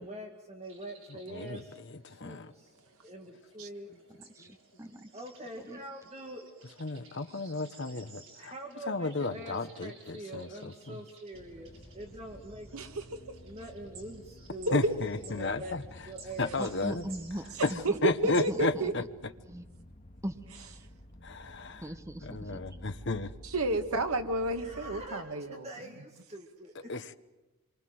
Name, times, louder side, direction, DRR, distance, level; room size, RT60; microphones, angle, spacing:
voice 1, 0.0-1.8 2.1-4.0 5.1-6.5 6.9-7.0 8.4-12.7 13.4-14.8 15.2-16.6 24.5-26.9, right 1 dB, 30° right, 2.1 m, -44 dB
sound 1, 0.6-18.9, right 4 dB, 60° right, 6.9 m, -56 dB
voice 2, 4.4-5.1 5.7-5.8 16.6-19.1 19.5-19.7 20.2-20.4 20.7-20.9 21.8-22.6, equal, 15° right, 1.0 m, -40 dB
voice 3, 6.8-8.2 8.9-10.5 10.9-11.0 14.7-15.8 16.4-17.0 17.6-17.7 18.0-19.0 21.2-21.8 22.2-23.3 26.9-27.2, left 3 dB, 55° left, 1.0 m, -33 dB
sound 2, 11.3-25.1, equal, 35° left, 1.8 m, -52 dB
voice 4, 17.8-18.9 23.4-25.7, right 1 dB, 85° right, 1.9 m, -30 dB
27.0 x 24.0 x 7.8 m
head